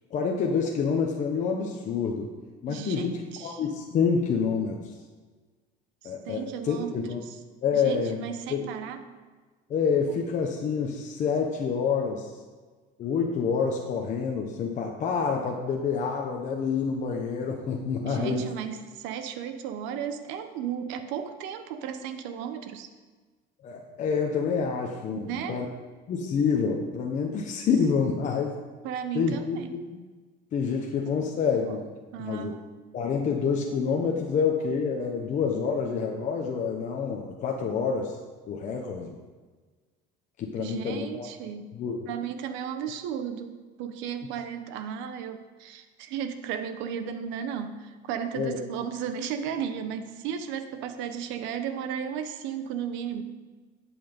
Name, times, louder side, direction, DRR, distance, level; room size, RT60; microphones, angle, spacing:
voice 1, 0.1-2.3 2.6-4.8 6.0-7.2 7.6-8.2 8.5-8.7 9.7-12.3 13.0-18.5 23.6-25.7 26.1-28.6 29.1-30.0 30.5-31.8 32.2-32.5 32.9-38.2 38.5-39.2 40.4-41.3 41.7-42.1 48.3-48.6, left 6 dB, 40° left, 1 dB, 1.1 m, -27 dB
voice 2, 2.7-3.6 6.2-7.4 7.7-9.0 18.1-22.9 25.2-25.6 28.8-29.7 31.7-31.8 32.1-32.6 40.6-41.7 42.1-53.2, right 8 dB, 80° right, 8 dB, 1.0 m, -34 dB
11.5 x 8.1 x 5.2 m, 1.4 s
cardioid pair, 155°, 19 cm